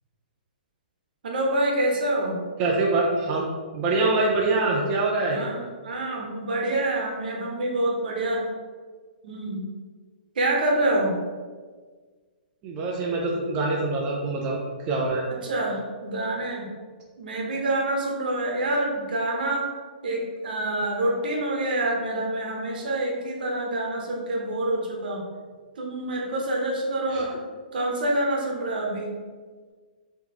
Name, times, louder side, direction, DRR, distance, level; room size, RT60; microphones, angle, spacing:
voice 1, 1.2-2.4 5.3-8.4 9.2-9.7 10.3-11.2 15.4-16.7 17.2-19.7 20.0-25.2 25.8-27.3 27.7-29.1, right 1 dB, 70° right, -1 dB, 1.0 m, -26 dB
voice 2, 2.6-3.4 3.7-5.4 12.6-14.6 14.8-15.3 27.1-27.2, right 3 dB, 20° right, -3 dB, 0.4 m, -24 dB
3.8 x 3.0 x 2.9 m, 1.5 s
hypercardioid pair, 165°, 5 cm